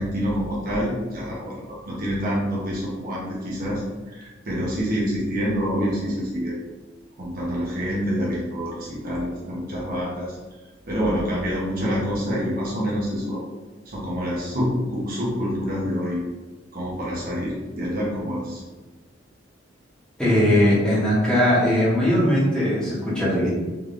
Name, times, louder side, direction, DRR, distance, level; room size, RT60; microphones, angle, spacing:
voice 1, 0.0-6.5 7.2-10.4 10.9-13.4 13.9-16.2 16.7-18.6, equal, 50° right, -6 dB, 1.0 m, -27 dB
voice 2, 20.2-23.5, equal, 5° left, -9 dB, 1.2 m, -19 dB
3.6 x 3.3 x 2.5 m, 1.3 s
head